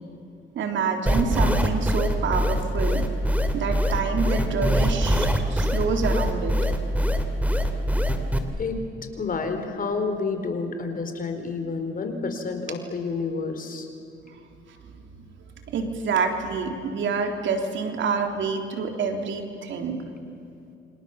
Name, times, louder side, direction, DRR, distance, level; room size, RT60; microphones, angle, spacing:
voice 1, 0.6-3.1 3.5-6.5 15.7-20.0, right 5 dB, 70° right, 4 dB, 3.6 m, -27 dB
sound 1, 1.1-8.4, equal, 5° right, 2.8 m, -22 dB
voice 2, 9.2-13.9, left 4 dB, 45° left, 6 dB, 4.2 m, -29 dB
28.5 x 26.0 x 7.2 m, 2.7 s
cardioid pair, 90°, 20 cm